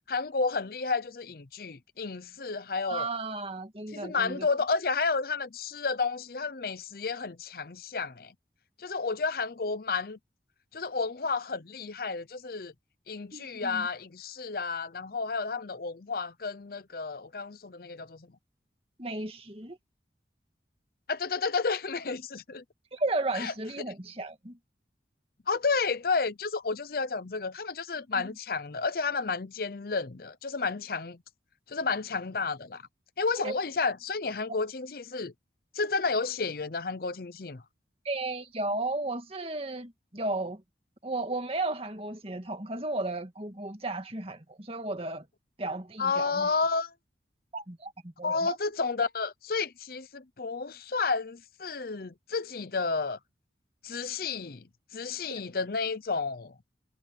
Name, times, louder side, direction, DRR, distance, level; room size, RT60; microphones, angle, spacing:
voice 1, 0.1-3.1 3.9-8.3 8.8-10.2 10.7-12.7 13.1-18.2 21.1-22.6 23.3-23.5 25.5-31.2 31.7-32.8 33.2-35.3 35.7-37.6 46.0-46.9 48.2-53.2 53.8-54.6 54.9-56.5, left 4 dB, 55° left, 0.7 m, -31 dB
voice 2, 2.9-4.5 13.3-13.9 19.0-19.8 22.9-24.6 28.2-28.3 33.4-33.6 34.5-34.6 38.0-40.6 41.0-45.3 45.6-46.5 47.5-48.6 55.3-55.4, right 2 dB, 30° right, 2.0 m, -34 dB
head